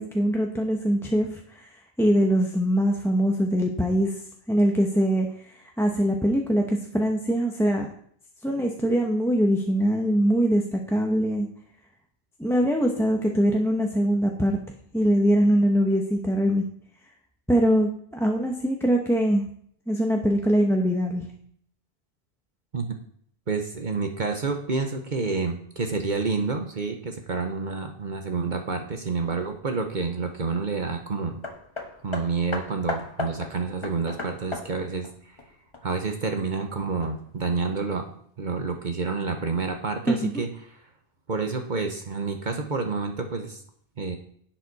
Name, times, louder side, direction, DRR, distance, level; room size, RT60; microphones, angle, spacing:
voice 1, 0.0-1.6 2.0-4.1 4.5-5.3 5.8-7.9 8.4-11.5 12.4-14.6 14.9-16.6 17.5-19.4 19.9-21.3 40.1-40.4, equal, 5° left, 0 dB, 0.9 m, -22 dB
voice 2, 23.5-31.4 32.0-35.4 35.8-38.1 38.4-40.5 41.3-43.6 44.0-44.2, right 4 dB, 50° right, 4 dB, 1.1 m, -29 dB
Hammer, 31.4-36.2 37.0-37.1, left 2 dB, 30° left, 1.2 m, -36 dB
11.0 x 7.5 x 4.1 m, 0.63 s
omnidirectional pair, 1.1 m